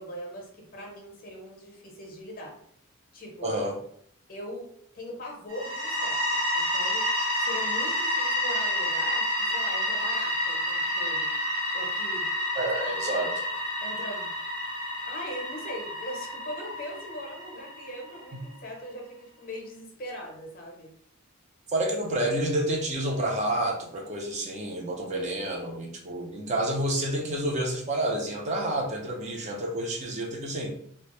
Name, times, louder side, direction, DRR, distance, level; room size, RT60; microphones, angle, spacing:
voice 1, 0.0-2.6 3.1-3.5 4.3-4.7 4.9-7.0 7.4-11.3 11.7-12.3 12.9-13.0 13.8-14.3 15.0-20.9, equal, 45° left, 0 dB, 0.6 m, -40 dB
voice 2, 3.4-3.7 12.6-13.3 21.7-30.7, right 1 dB, 35° right, 0 dB, 0.5 m, -29 dB
sound 1, 5.5-18.2, left 1 dB, 85° right, 1.0 m, -29 dB
2.2 x 2.0 x 2.9 m, 0.67 s
head